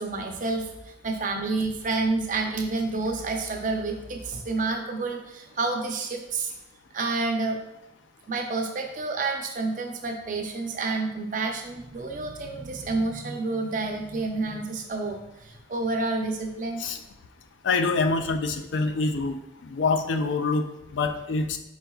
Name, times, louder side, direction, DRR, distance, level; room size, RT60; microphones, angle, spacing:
voice 1, 0.0-6.5 6.9-7.6 8.3-16.8, right 3 dB, 45° right, 3 dB, 0.5 m, -29 dB
voice 2, 17.6-19.4 19.6-21.6, left 3 dB, 90° left, 7 dB, 0.4 m, -26 dB
4.3 x 4.1 x 2.3 m, 0.89 s
head